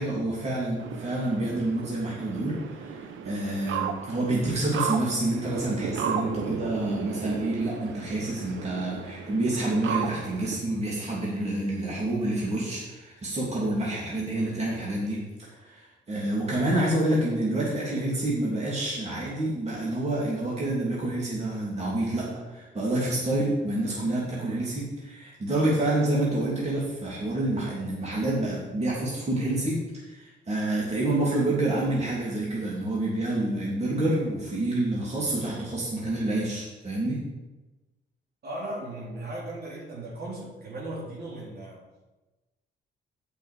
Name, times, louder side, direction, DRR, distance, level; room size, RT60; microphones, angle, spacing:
voice 1, 0.0-37.2, right 1 dB, 35° right, -6 dB, 3.1 m, -28 dB
sound 1, 0.8-10.6, right 7 dB, 75° right, 0.9 m, -35 dB
voice 2, 38.4-41.8, right 1 dB, 55° right, -4 dB, 3.7 m, -37 dB
8.6 x 6.4 x 6.9 m, 1.1 s
cardioid pair, 90°, 20 cm